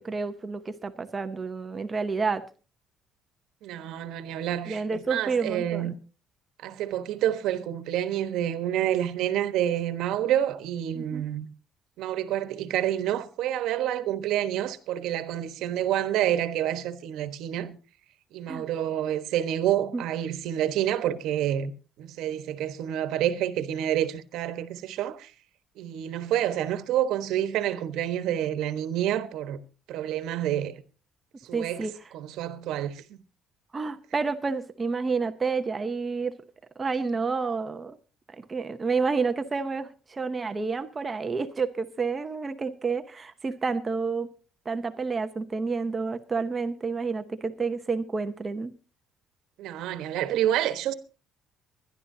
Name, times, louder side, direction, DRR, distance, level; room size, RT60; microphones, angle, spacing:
voice 1, 0.0-2.4 4.7-5.9 10.9-11.2 18.5-18.7 19.9-20.0 31.5-32.0 33.7-36.3 36.8-38.0 38.5-44.3 44.7-48.7, right 4 dB, 20° right, 0.7 m, -29 dB
voice 2, 3.6-5.9 6.6-11.5 12.0-17.8 18.3-21.7 22.0-25.3 25.8-29.6 29.9-30.7 31.4-33.2 49.6-50.9, right 11 dB, 70° right, 1.2 m, -28 dB
23.5 x 11.0 x 2.7 m
cardioid pair, 170°, 0 cm